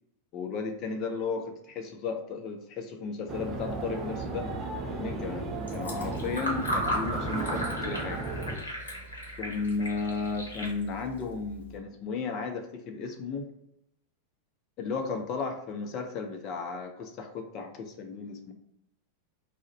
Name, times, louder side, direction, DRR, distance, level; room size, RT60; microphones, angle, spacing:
voice 1, 0.3-4.5 4.9-8.2 9.4-13.5 14.8-18.5, left 4 dB, 35° left, 4 dB, 0.5 m, -34 dB
sound 1, 3.3-8.6, right 3 dB, 25° right, 0.5 m, -35 dB
Fill (with liquid), 5.6-11.8, equal, 75° left, 0.8 m, -36 dB
2.5 x 2.0 x 3.9 m, 0.79 s
figure-of-eight pair, 90°, 0 cm